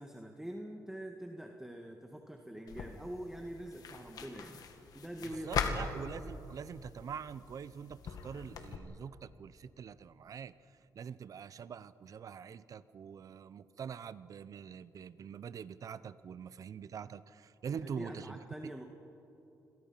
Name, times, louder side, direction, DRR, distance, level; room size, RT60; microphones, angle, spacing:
voice 1, 0.0-4.6 4.9-5.8 17.7-18.9, right 1 dB, 5° right, 2 dB, 1.9 m, -45 dB
sound 1, 2.7-8.8, left 5 dB, 70° left, 2.2 m, -41 dB
voice 2, 5.4-18.8, right 7 dB, 55° right, 16 dB, 0.8 m, -45 dB
29.5 x 23.0 x 5.8 m, 3.0 s
cardioid pair, 80°, 7 cm